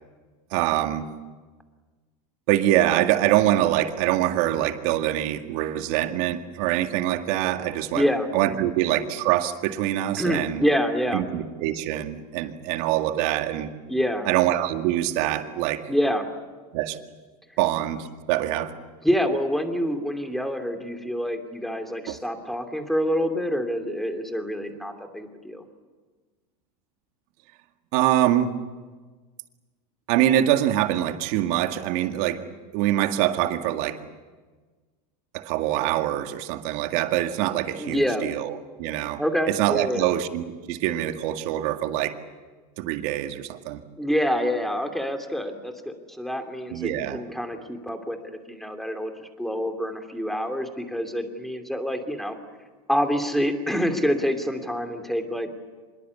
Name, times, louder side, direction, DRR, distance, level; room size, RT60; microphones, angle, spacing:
voice 1, 0.5-1.1 2.5-8.0 8.3-10.6 11.1-13.7 14.3-15.8 16.7-17.0 17.6-18.8 22.1-22.2 27.9-28.5 30.1-32.4 32.7-34.0 35.3-39.2 39.5-42.2 42.8-43.8 46.7-47.2, right 13 dB, 60° right, 7 dB, 2.0 m, -24 dB
voice 2, 7.9-8.3 8.6-8.7 10.2-11.2 13.9-14.3 15.9-16.3 19.0-25.6 37.8-38.2 39.2-40.1 44.0-48.2 48.5-52.4 52.9-55.5, equal, ahead, 6 dB, 2.9 m, -26 dB
25.0 x 22.0 x 8.4 m, 1.4 s
supercardioid pair, 115°, 21 cm